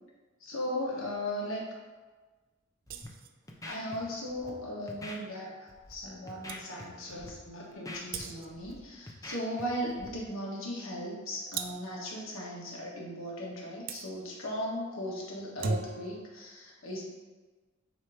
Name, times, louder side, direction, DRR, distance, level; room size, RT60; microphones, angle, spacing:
voice 1, 0.4-1.6 3.6-17.0, equal, 80° left, -3 dB, 1.5 m, -37 dB
Scratching (performance technique), 2.9-3.1 3.5-4.0 4.3-4.5 4.9-5.2 5.7-5.9 6.3-6.8 7.1-7.3 7.6-8.7 9.1-9.6 9.9-10.1, left 1 dB, 15° left, 0.7 m, -44 dB
sound 1, 2.9-3.4 6.1-6.2 6.5-6.7 8.1-8.7 11.5-12.0 13.9-14.1 15.4-16.2, right 4 dB, 45° right, 0.4 m, -37 dB
7.4 x 3.1 x 4.9 m, 1.3 s
head